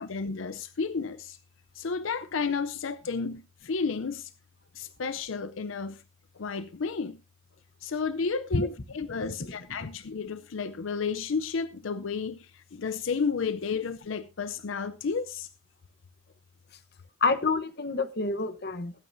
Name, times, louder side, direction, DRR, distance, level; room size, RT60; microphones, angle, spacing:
voice 1, 0.0-1.4 1.7-4.3 4.7-6.0 6.4-7.2 7.8-15.5, left 5 dB, 80° left, 0.6 m, -32 dB
voice 2, 9.1-9.5 9.8-9.9 17.2-18.9, left 3 dB, 55° left, 1.0 m, -28 dB
20.5 x 9.2 x 2.6 m
head